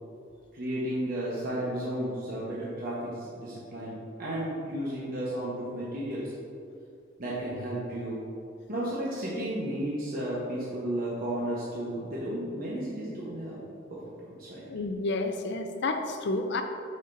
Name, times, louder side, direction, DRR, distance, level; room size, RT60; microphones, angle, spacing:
voice 1, 0.5-6.3 7.2-8.2 8.7-13.6 13.9-14.6, right 1 dB, 50° right, -7 dB, 1.0 m, -33 dB
voice 2, 14.6-16.6, left 2 dB, 60° left, 6 dB, 0.5 m, -30 dB
6.5 x 6.4 x 2.6 m, 2.5 s
head